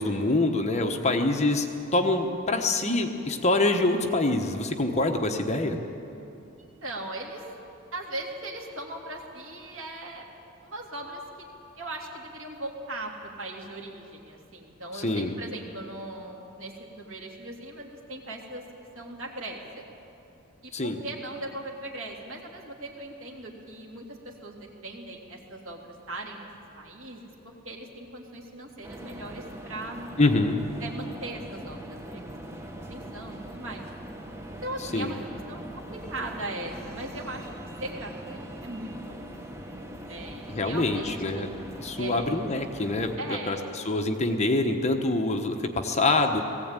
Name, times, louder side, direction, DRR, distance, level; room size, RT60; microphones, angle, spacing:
voice 1, 0.0-1.7 1.9-5.8 14.9-15.3 20.7-21.0 30.2-30.6 34.8-35.1 40.5-46.4, left 2 dB, 30° left, 4 dB, 1.1 m, -25 dB
voice 2, 6.8-7.4 7.9-10.2 10.6-11.2 11.8-18.6 18.9-19.9 20.6-26.5 26.8-27.3 27.6-30.2 30.8-33.8 34.6-35.2 35.5-37.5 37.8-39.2 40.1-41.5 42.0-42.4 43.2-43.8, right 2 dB, 65° right, -1 dB, 3.0 m, -39 dB
sound 1, 28.8-43.2, right 1 dB, 10° right, 1.1 m, -41 dB
19.0 x 16.0 x 9.0 m, 2.8 s
head